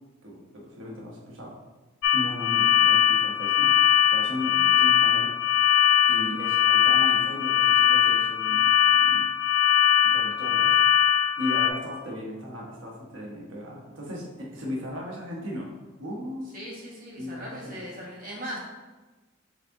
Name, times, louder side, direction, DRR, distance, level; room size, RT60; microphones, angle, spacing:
voice 1, 0.2-1.6 2.1-3.8 4.1-5.3 6.1-9.3 10.0-10.8 11.1-15.7 16.0-16.5 17.2-18.1, left 1 dB, 70° right, -2 dB, 1.0 m, -37 dB
sound 1, 2.0-11.7, left 9 dB, 80° left, 0.4 m, -21 dB
voice 2, 16.5-18.6, equal, 45° right, -5 dB, 1.2 m, -39 dB
4.8 x 2.7 x 3.7 m, 1.2 s
head